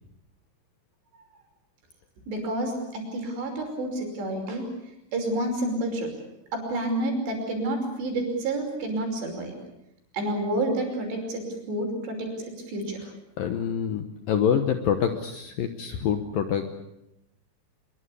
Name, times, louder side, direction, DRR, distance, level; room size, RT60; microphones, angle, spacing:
voice 1, 2.3-4.7 5.1-6.1 6.5-9.6 10.1-13.0, right 1 dB, 65° right, 3 dB, 7.6 m, -29 dB
voice 2, 13.4-16.7, left 8 dB, 65° left, 8 dB, 2.4 m, -26 dB
25.0 x 23.0 x 8.5 m, 0.83 s
omnidirectional pair, 5.4 m